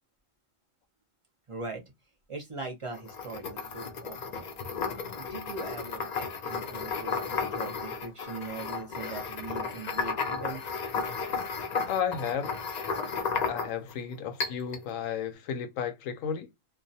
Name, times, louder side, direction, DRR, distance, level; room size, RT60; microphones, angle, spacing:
voice 1, 1.5-1.8 2.3-4.6 5.2-10.6, right 3 dB, 40° right, 0.5 m, -41 dB
sound 1, 2.9-13.9 14.4-14.8, left 5 dB, 60° left, 0.4 m, -33 dB
voice 2, 11.9-12.5 13.5-16.5, left 8 dB, 90° left, 1.0 m, -33 dB
2.4 x 2.1 x 2.6 m
omnidirectional pair, 1.3 m